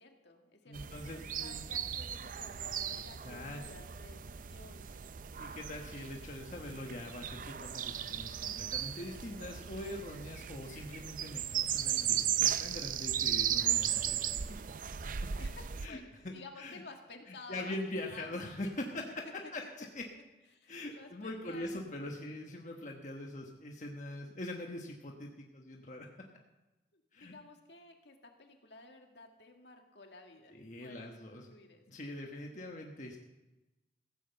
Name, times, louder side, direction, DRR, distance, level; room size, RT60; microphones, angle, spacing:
voice 1, 0.0-5.1 15.4-17.8 18.1-18.3 18.6-19.0 19.6-19.9 20.5-22.3 26.9-30.6 30.8-31.8, left 3 dB, 75° left, 3 dB, 1.9 m, -54 dB
voice 2, 0.7-1.6 2.9-3.6 5.4-14.6 14.9-15.4 15.8-16.0 16.2-16.8 17.3-19.1 19.5-20.0 20.7-26.1 27.1-27.3 30.5-31.5 31.9-33.2, left 1 dB, 45° left, 1 dB, 1.2 m, -43 dB
sound 1, 0.7-15.9, right 10 dB, 50° right, 0.5 m, -36 dB
15.5 x 7.6 x 7.7 m, 1.1 s
head